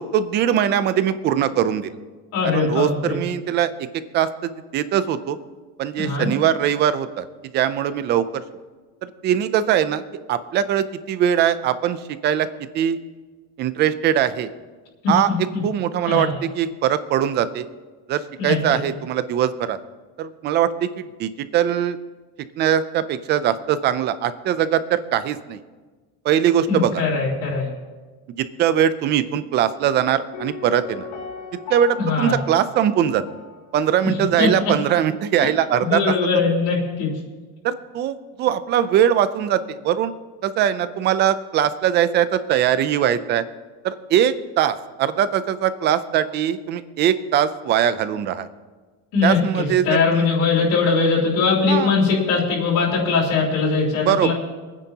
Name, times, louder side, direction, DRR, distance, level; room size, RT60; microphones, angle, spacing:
voice 1, 0.0-1.9 2.4-3.7 4.1-5.4 5.8-7.3 7.5-8.2 9.0-10.0 10.3-12.5 12.7-13.0 13.6-14.5 15.1-15.3 15.6-17.7 18.1-19.8 20.2-22.0 22.6-25.6 26.2-27.0 28.4-31.1 31.7-33.2 33.7-36.1 37.6-40.1 40.4-43.4 43.8-48.5 49.2-50.3 51.7-51.9 54.1-54.3, right 10 dB, 30° right, 13 dB, 0.4 m, -21 dB
voice 2, 2.3-3.2 6.0-6.3 15.0-15.6 16.1-16.3 18.4-18.8 26.7-27.7 32.0-32.3 34.4-34.5 35.4-35.5 35.8-37.1 49.1-54.3, left 4 dB, 50° left, -4 dB, 3.5 m, -21 dB
Piano, 30.3-34.1 34.4-34.5, left 5 dB, 80° left, 2.5 m, -37 dB
26.5 x 9.9 x 2.8 m, 1.3 s
cardioid pair, 175°, 41 cm